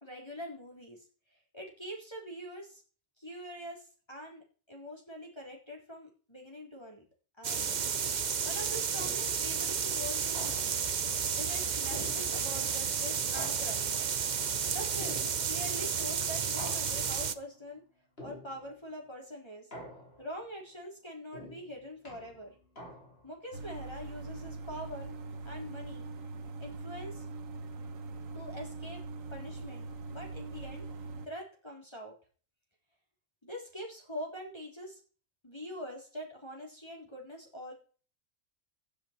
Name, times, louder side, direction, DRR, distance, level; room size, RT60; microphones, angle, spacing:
voice 1, 0.0-2.8 3.2-7.0 7.4-7.8 8.1-10.9 11.4-13.8 14.7-17.8 18.2-19.7 20.2-22.6 23.2-25.1 25.4-26.1 26.6-27.3 28.3-29.0 29.3-30.9 31.2-32.2 33.4-35.0 35.4-37.7, equal, 20° left, -1 dB, 3.5 m, -44 dB
sound 1, 7.4-17.3, right 6 dB, 40° right, 0.8 m, -32 dB
sound 2, 9.0-9.5 10.3-11.0 11.9-12.7 13.3-14.1 15.0-15.7 16.6-17.3 18.2-18.8 19.7-20.4 21.3-23.4, equal, 50° left, 4.5 m, -47 dB
sound 3, 23.5-31.3, right 3 dB, 75° right, 1.6 m, -42 dB
15.0 x 9.0 x 4.4 m, 0.39 s
omnidirectional pair, 1.4 m